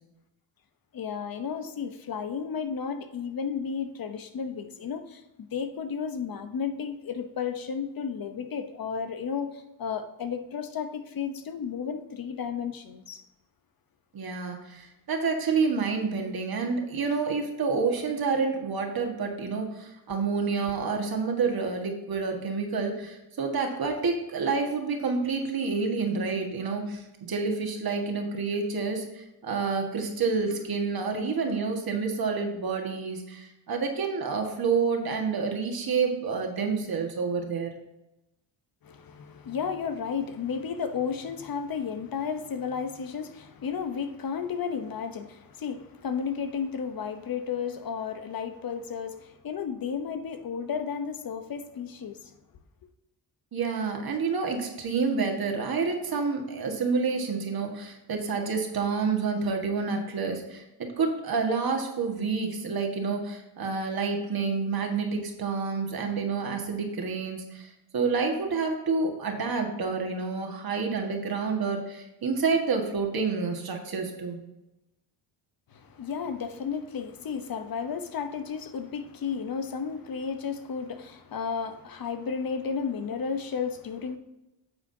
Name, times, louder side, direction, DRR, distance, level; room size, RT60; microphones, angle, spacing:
voice 1, 0.9-5.2 5.5-13.2 38.8-52.3 75.7-84.2, left 6 dB, 50° left, 0.9 m, -33 dB
voice 2, 14.1-37.7 53.5-74.4, right 4 dB, 50° right, 1.7 m, -28 dB
9.3 x 7.0 x 2.8 m
cardioid pair, 70°, 46 cm